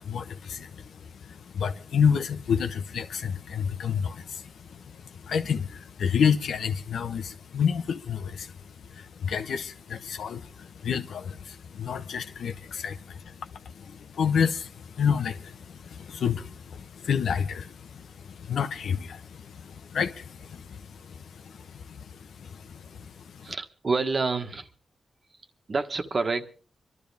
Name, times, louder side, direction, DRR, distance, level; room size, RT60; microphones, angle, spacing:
voice 1, 0.0-23.5, left 7 dB, 85° left, 1.1 m, -30 dB
voice 2, 23.4-24.7 25.7-26.5, right 4 dB, 45° right, 1.6 m, -28 dB
25.0 x 12.5 x 3.4 m
cardioid pair, 70°, 0 cm